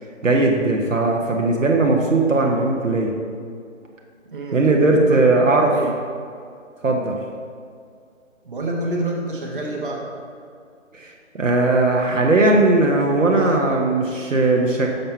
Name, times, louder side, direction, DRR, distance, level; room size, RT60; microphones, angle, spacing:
voice 1, 0.2-3.1 4.5-5.8 6.8-7.2 10.9-14.9, right 2 dB, 70° right, 0 dB, 1.1 m, -18 dB
voice 2, 4.3-5.2 5.7-5.9 8.4-10.1, right 2 dB, 40° right, -1 dB, 1.2 m, -27 dB
6.6 x 5.9 x 4.4 m, 2.3 s
figure-of-eight pair, 150°, 39 cm